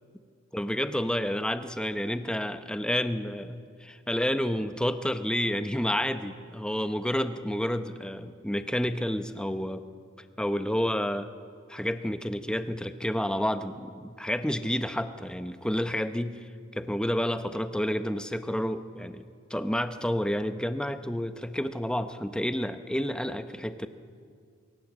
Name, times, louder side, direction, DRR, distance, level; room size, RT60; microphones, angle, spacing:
voice 1, 0.5-9.8 10.4-11.3 11.7-23.9, equal, 5° left, 9 dB, 0.7 m, -30 dB
24.5 x 22.5 x 7.4 m, 2.2 s
head